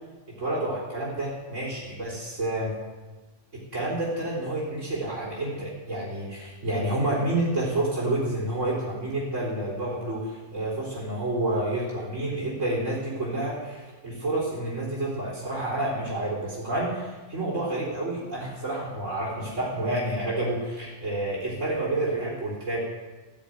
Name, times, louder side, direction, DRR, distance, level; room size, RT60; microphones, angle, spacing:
voice 1, 0.4-2.7 3.7-22.8, right 1 dB, 90° right, -6 dB, 4.3 m, -29 dB
15.0 x 7.2 x 9.3 m, 1.3 s
omnidirectional pair, 1.2 m